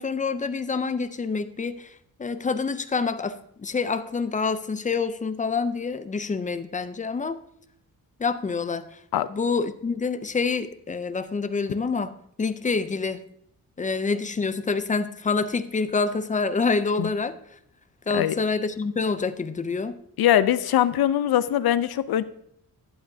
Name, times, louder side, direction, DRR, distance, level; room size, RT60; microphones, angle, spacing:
voice 1, 0.0-7.4 8.2-9.0 9.3-13.2 13.8-17.4 18.1-20.0, left 4 dB, 20° left, 12 dB, 0.4 m, -27 dB
voice 2, 20.2-22.2, left 11 dB, 80° left, 15 dB, 0.6 m, -22 dB
11.5 x 8.3 x 2.7 m, 0.71 s
wide cardioid pair, 140°, 36 cm